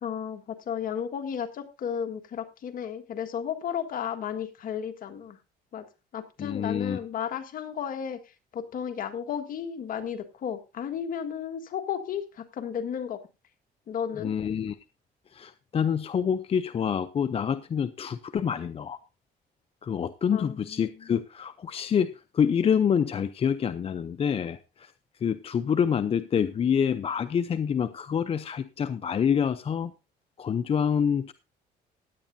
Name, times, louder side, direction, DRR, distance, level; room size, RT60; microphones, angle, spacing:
voice 1, 0.0-5.4 5.7-5.9 6.1-8.2 8.5-13.2 13.9-14.3 20.3-21.1, left 8 dB, 55° left, 7 dB, 1.6 m, -33 dB
voice 2, 6.4-7.0 14.2-14.8 15.3-19.0 19.8-29.9 30.4-31.3, left 7 dB, 35° left, 13 dB, 0.6 m, -27 dB
16.5 x 10.0 x 2.7 m, 0.28 s
cardioid pair, 110°, 17 cm